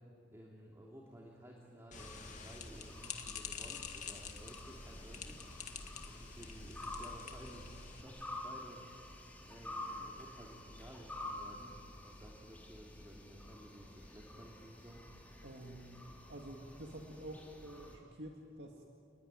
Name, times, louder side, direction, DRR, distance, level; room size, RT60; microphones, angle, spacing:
voice 1, 0.3-5.4 6.0-7.7 8.0-8.8 9.5-15.0, right 1 dB, 15° right, -2 dB, 2.9 m, -55 dB
sound 1, 1.9-8.0, left 6 dB, 45° left, 1.9 m, -48 dB
sound 2, 1.9-18.0, left 1 dB, 10° left, 3.6 m, -50 dB
voice 2, 15.4-18.8, right 1 dB, 75° right, 1 dB, 2.1 m, -49 dB
29.5 x 20.5 x 9.1 m, 2.7 s
head